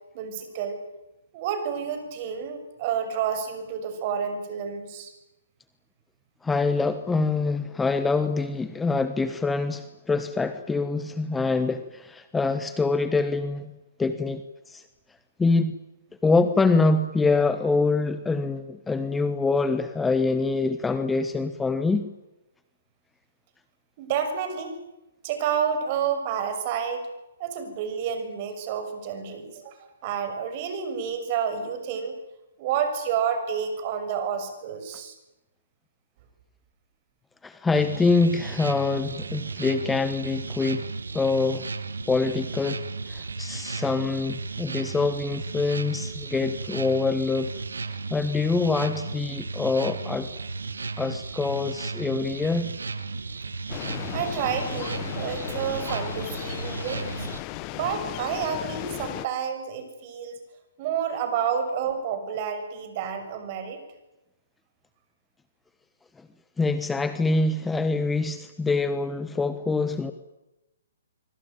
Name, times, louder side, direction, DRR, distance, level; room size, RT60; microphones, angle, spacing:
voice 1, 0.1-0.8 1.3-5.1 24.0-24.8 25.2-27.1 27.4-32.2 32.6-35.1 54.1-57.1 57.7-60.4 60.8-63.8, right 7 dB, 40° right, 8 dB, 6.4 m, -29 dB
voice 2, 6.4-13.7 14.0-14.8 15.4-15.8 16.2-22.1 37.4-40.9 41.1-41.7 42.1-42.8 43.1-47.5 48.1-50.3 51.0-52.7 59.1-59.2 66.6-70.1, left 3 dB, 10° left, 11 dB, 1.3 m, -25 dB
sound 1, 37.7-57.4, right 4 dB, 80° right, 2.1 m, -35 dB
sound 2, 53.7-59.3, left 20 dB, 30° left, 1.0 m, -36 dB
25.0 x 24.5 x 9.2 m, 0.99 s
hypercardioid pair, 135°, 0 cm